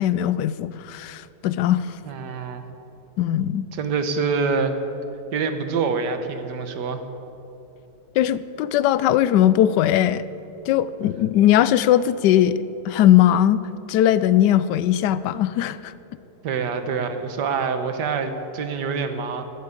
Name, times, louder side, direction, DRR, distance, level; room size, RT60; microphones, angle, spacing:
voice 1, 0.0-1.9 3.2-3.7 8.2-10.2 10.7-13.6 13.9-15.9, left 11 dB, 90° left, 16 dB, 1.2 m, -19 dB
voice 2, 2.1-2.6 3.7-4.8 5.3-7.0 16.4-19.4, right 5 dB, 85° right, 8 dB, 1.7 m, -26 dB
13.5 x 8.5 x 9.5 m, 3.0 s
omnidirectional pair, 1.8 m